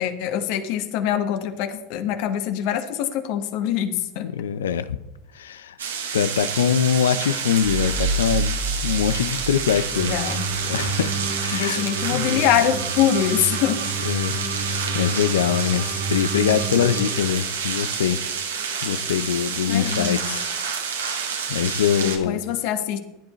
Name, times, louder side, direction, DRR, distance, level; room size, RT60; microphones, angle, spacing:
voice 1, 0.0-4.3 10.0-10.4 11.5-13.8 19.7-20.3 22.0-23.0, left 10 dB, 60° left, 8 dB, 1.5 m, -24 dB
voice 2, 4.2-5.0 5.3-5.7 6.1-10.1 10.6-11.8 12.1-12.5 14.0-18.2 18.8-20.4 20.9-22.4, left 8 dB, 80° left, 14 dB, 0.7 m, -23 dB
sound 1, 5.8-22.2, right 6 dB, 85° right, 2.0 m, -29 dB
sound 2, 7.6-11.0, right 2 dB, 45° right, 2.1 m, -29 dB
sound 3, 9.9-17.2, right 4 dB, 65° right, 2.0 m, -30 dB
15.0 x 10.5 x 3.2 m, 0.95 s
hypercardioid pair, 85°, 0 cm